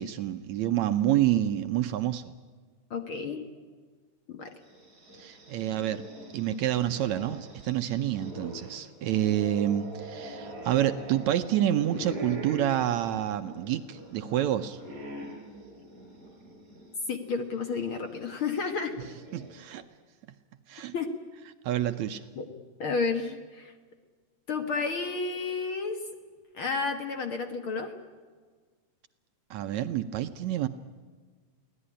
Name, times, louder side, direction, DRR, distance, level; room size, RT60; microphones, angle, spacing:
voice 1, 0.0-2.3 5.2-6.0 6.3-14.8 19.3-19.8 20.7-20.9 21.7-22.2 29.5-30.7, right 12 dB, 70° right, 10 dB, 1.9 m, -28 dB
voice 2, 2.9-3.4 4.3-4.5 17.1-19.0 20.9-21.1 22.4-22.5 22.8-23.7 24.5-26.0 26.5-27.9, left 4 dB, 50° left, 7 dB, 1.8 m, -31 dB
sound 1, 4.6-16.9 17.3-17.4 18.5-19.7, equal, 25° right, 6.3 m, -43 dB
24.0 x 17.0 x 9.9 m, 1.5 s
omnidirectional pair, 3.7 m